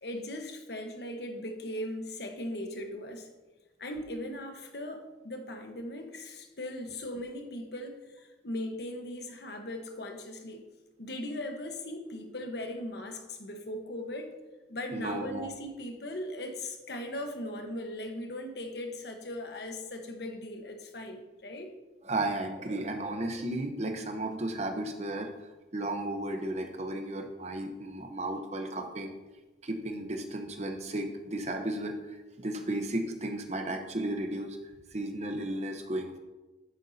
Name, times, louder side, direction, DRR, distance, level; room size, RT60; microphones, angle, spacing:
voice 1, 0.0-3.3 3.8-10.7 11.0-14.3 14.7-21.8, left 1 dB, 60° left, 4 dB, 1.2 m, -39 dB
voice 2, 14.9-15.5 22.0-25.3 25.7-29.1 29.6-34.6 34.9-36.2, right 1 dB, 35° right, 5 dB, 0.9 m, -34 dB
11.0 x 9.0 x 2.8 m, 1.1 s
head